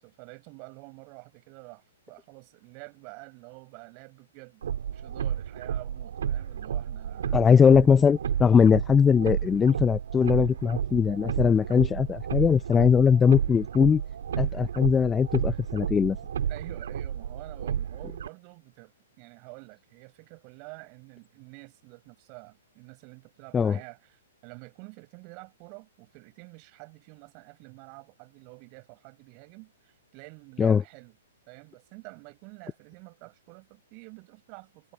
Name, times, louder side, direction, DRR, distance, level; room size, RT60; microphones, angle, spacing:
voice 1, 0.0-7.6 16.5-31.2 31.5-34.9, right 36 dB, 40° right, 6.0 m, -48 dB
sound 1, 4.6-18.3, right 8 dB, 70° right, 3.8 m, -32 dB
voice 2, 7.3-14.0 14.4-16.2 23.5-23.8 30.6-30.8, left 6 dB, 15° left, 0.4 m, -20 dB
hypercardioid pair, 125°, 0 cm